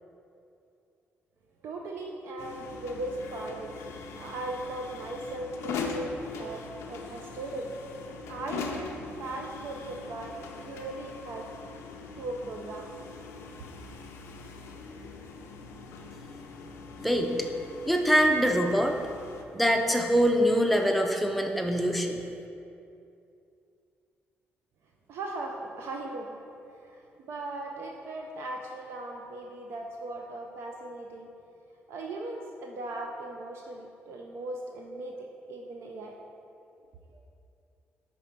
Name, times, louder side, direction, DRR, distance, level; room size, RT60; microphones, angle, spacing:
voice 1, 1.6-3.7 4.2-7.7 8.3-8.9 9.2-11.5 12.2-12.9 25.1-26.4 26.7-31.3 31.9-36.2 37.1-37.2, right 2 dB, 70° right, 1 dB, 0.4 m, -38 dB
sound 1, 2.4-19.4, left 4 dB, 90° left, 0.5 m, -41 dB
voice 2, 17.0-17.3 17.9-19.0 19.5-22.2, equal, ahead, 2 dB, 0.4 m, -24 dB
5.3 x 4.1 x 4.4 m, 2.6 s
cardioid pair, 130°, 4 cm